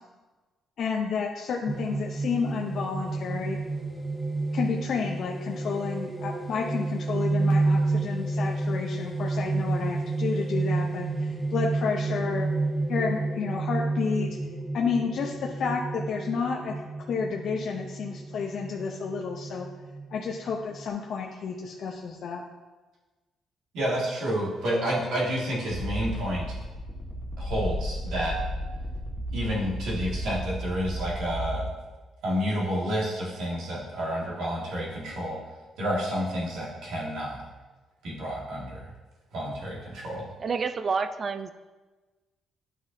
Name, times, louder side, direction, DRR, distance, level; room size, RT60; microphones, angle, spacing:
voice 1, 0.8-3.6 4.5-12.5 12.9-14.4 14.7-16.8 17.1-19.7 20.1-22.4, left 5 dB, 65° left, 0 dB, 0.6 m, -31 dB
sound 1, 1.7-20.8, right 3 dB, 5° right, 0.9 m, -30 dB
voice 2, 23.7-26.4 27.4-28.4 29.3-31.7 32.2-35.4 35.8-37.4 38.0-38.9 39.3-40.3, equal, 85° right, -5 dB, 1.9 m, -30 dB
sound 2, 25.7-31.7, equal, 20° left, 1.5 m, -33 dB
voice 3, 40.4-41.5, right 5 dB, 45° right, 11 dB, 0.4 m, -28 dB
9.2 x 5.7 x 2.7 m, 1.2 s
cardioid pair, 90°, 0 cm